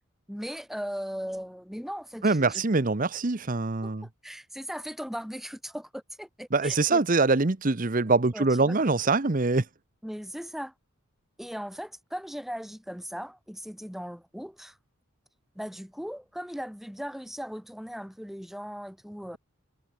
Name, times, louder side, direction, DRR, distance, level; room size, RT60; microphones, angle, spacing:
voice 1, 0.3-2.6 3.8-3.9 4.2-7.0 8.3-8.8 10.0-10.7 11.4-14.8 15.5-19.4, equal, ahead, 1.7 m, -38 dB
voice 2, 2.2-4.1 6.5-9.6, right 3 dB, 40° right, 0.9 m, -24 dB
head